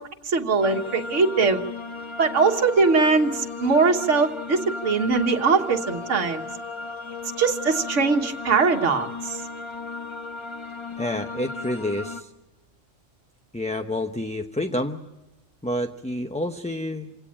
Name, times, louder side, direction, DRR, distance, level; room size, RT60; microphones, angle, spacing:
voice 1, 0.3-1.6 2.2-6.4 7.4-9.4, right 4 dB, 75° right, 3 dB, 1.7 m, -21 dB
sound 1, 0.6-12.2, left 4 dB, 25° left, 1.3 m, -35 dB
voice 2, 11.0-12.3 13.5-15.0 15.6-17.2, left 1 dB, 5° left, 6 dB, 0.7 m, -28 dB
27.5 x 17.5 x 8.7 m, 1.1 s
omnidirectional pair, 1.3 m